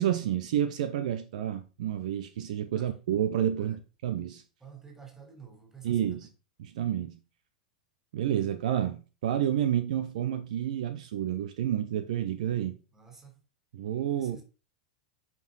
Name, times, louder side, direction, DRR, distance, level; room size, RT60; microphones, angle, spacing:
voice 1, 0.0-3.8 4.0-4.4 5.8-6.3 6.6-7.2 8.1-12.8 13.7-14.4, right 10 dB, 60° right, 0.7 m, -29 dB
voice 2, 4.6-6.3 12.9-13.4 14.1-14.4, right 6 dB, 10° right, 3.5 m, -50 dB
9.1 x 5.3 x 4.0 m
figure-of-eight pair, 90°, 4 cm